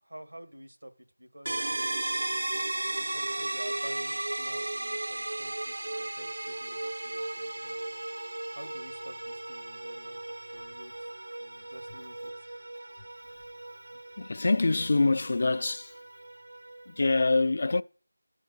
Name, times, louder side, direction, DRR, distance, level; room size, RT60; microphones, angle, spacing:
voice 1, 0.0-1.6 2.9-7.8 8.5-10.2 10.5-11.1 11.4-12.5 13.3-13.4 13.9-14.0, right 1 dB, 85° right, 1.8 m, -49 dB
sound 1, 1.5-17.0, right 2 dB, 60° right, 0.4 m, -36 dB
voice 2, 14.2-16.0 16.9-17.8, left 3 dB, 45° left, 0.4 m, -25 dB
12.0 x 4.6 x 8.1 m
figure-of-eight pair, 170°, 0 cm